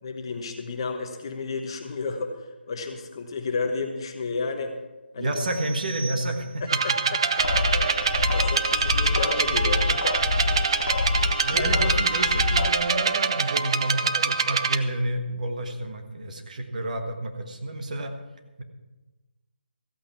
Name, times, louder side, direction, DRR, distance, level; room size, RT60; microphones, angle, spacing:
voice 1, 0.0-4.7 5.1-5.3 6.6-7.2 7.8-10.7 11.4-11.7, left 3 dB, 25° left, 5 dB, 1.0 m, -32 dB
voice 2, 5.2-6.8 11.4-18.2, right 1 dB, 45° right, 4 dB, 1.5 m, -30 dB
sound 1, 5.3-6.9, right 4 dB, 65° right, 1.0 m, -41 dB
sound 2, 6.7-14.8, right 5 dB, 30° right, 0.5 m, -25 dB
sound 3, 7.4-12.7, left 3 dB, 60° left, 0.8 m, -26 dB
15.0 x 8.5 x 6.0 m, 1.1 s
hypercardioid pair, 170°, 6 cm